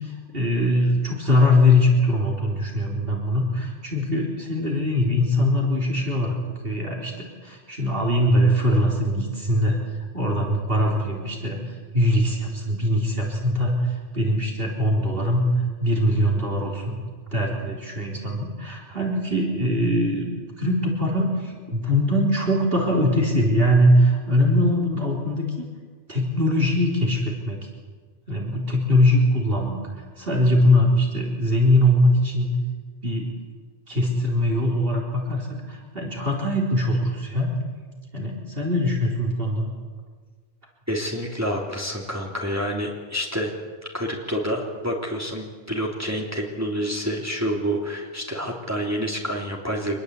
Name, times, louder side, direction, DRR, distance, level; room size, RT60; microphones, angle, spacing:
voice 1, 0.0-6.3 6.6-9.8 10.1-16.9 17.3-20.3 20.6-25.7 26.1-27.6 28.3-29.8 30.2-32.5 33.0-33.3 33.9-37.6 38.1-39.7, left 1 dB, 65° right, 0 dB, 4.2 m, -22 dB
voice 2, 40.9-43.5 43.9-50.0, equal, 15° right, -1 dB, 3.4 m, -28 dB
26.0 x 21.0 x 8.4 m, 1.5 s
omnidirectional pair, 1.1 m